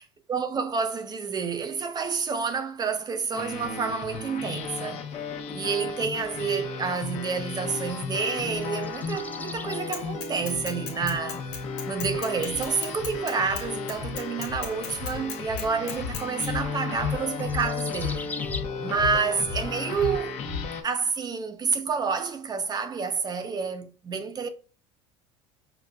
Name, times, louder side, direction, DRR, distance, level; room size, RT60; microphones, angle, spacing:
voice 1, 0.3-5.1 5.5-11.5 11.9-18.4 18.8-20.4 20.8-24.5, right 5 dB, 30° right, 0.6 m, -29 dB
sound 1, 3.3-20.8, left 5 dB, 50° left, 0.9 m, -34 dB
sound 2, 8.5-18.6, left 3 dB, 10° left, 0.4 m, -45 dB
Bicycle / Mechanisms, 9.9-16.5, left 7 dB, 90° left, 1.0 m, -37 dB
5.6 x 2.4 x 2.3 m
supercardioid pair, 100°, 14 cm